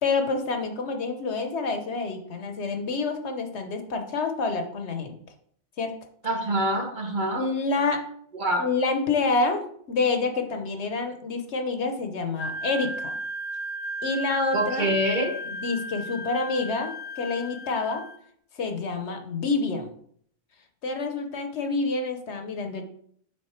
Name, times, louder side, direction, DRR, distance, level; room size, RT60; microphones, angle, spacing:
voice 1, 0.0-5.2 5.8-5.9 7.3-8.0 8.6-13.2 14.0-14.9 15.5-18.0 18.5-19.9 20.8-22.8, left 3 dB, 70° left, 5 dB, 1.1 m, -28 dB
voice 2, 6.2-7.5 8.4-8.6 14.5-15.3, right 1 dB, 45° right, 1 dB, 1.2 m, -25 dB
Wind instrument woodwind instrument, 12.4-18.2, right 1 dB, 50° left, 0.8 m, -35 dB
6.5 x 4.1 x 4.3 m, 0.63 s
omnidirectional pair, 1.2 m